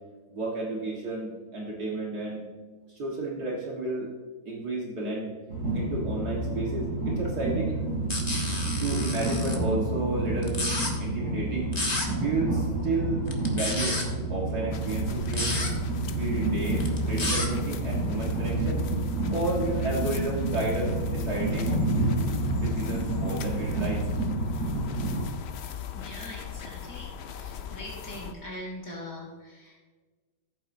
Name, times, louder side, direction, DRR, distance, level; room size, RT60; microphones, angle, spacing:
voice 1, 0.3-2.4 2.9-4.1 4.5-5.4 5.7-7.8 8.5-10.6 11.0-11.7 12.2-13.2 13.5-14.0 14.3-15.6 16.1-21.8 22.5-24.1, right 2 dB, 60° right, -3 dB, 2.1 m, -32 dB
Train, 5.5-25.2, right 2 dB, 75° right, 3.9 m, -29 dB
sound 1, 8.1-9.6 10.4-10.9 11.7-12.1 13.3-14.0 15.3-15.7 16.8-17.5, left 2 dB, 25° left, 1.3 m, -30 dB
sound 2, 14.7-28.3, left 7 dB, 85° left, 0.5 m, -39 dB
voice 2, 25.9-29.8, left 1 dB, 50° left, -4 dB, 2.4 m, -42 dB
14.5 x 8.9 x 2.7 m, 1.3 s
omnidirectional pair, 1.9 m